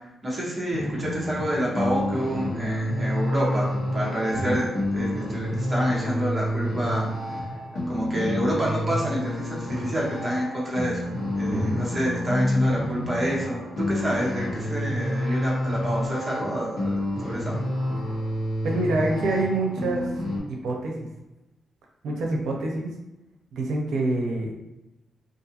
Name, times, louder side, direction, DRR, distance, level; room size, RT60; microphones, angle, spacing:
voice 1, 0.2-3.7 3.9-7.1 7.9-17.0 17.2-17.6, equal, 15° right, -5 dB, 0.7 m, -28 dB
sound 1, 0.7-20.4, left 1 dB, 60° left, 1.0 m, -29 dB
voice 2, 11.5-11.8 18.6-20.1 20.5-21.0 22.0-22.9 23.5-24.5, right 2 dB, 85° right, 0 dB, 0.5 m, -26 dB
2.5 x 2.4 x 2.7 m, 0.98 s
wide cardioid pair, 175°, 0 cm